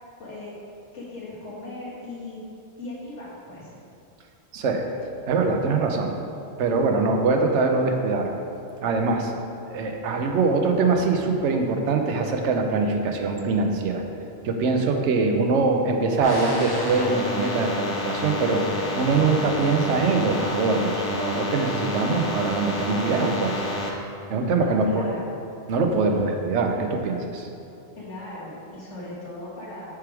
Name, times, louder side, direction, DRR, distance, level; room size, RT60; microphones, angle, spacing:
voice 1, 0.2-0.5 0.9-2.4 2.8-3.7 24.5-25.4 28.0-29.9, left 1 dB, 85° left, -8 dB, 1.9 m, -38 dB
voice 2, 4.5-4.8 5.3-6.1 6.6-8.3 8.8-9.3 9.7-14.0 14.4-23.6 24.3-25.0 25.7-27.5, right 3 dB, 85° right, 4 dB, 1.0 m, -23 dB
sound 1, 16.2-23.9, left 1 dB, 30° left, 0.4 m, -29 dB
6.7 x 4.6 x 3.5 m, 2.6 s
omnidirectional pair, 1.2 m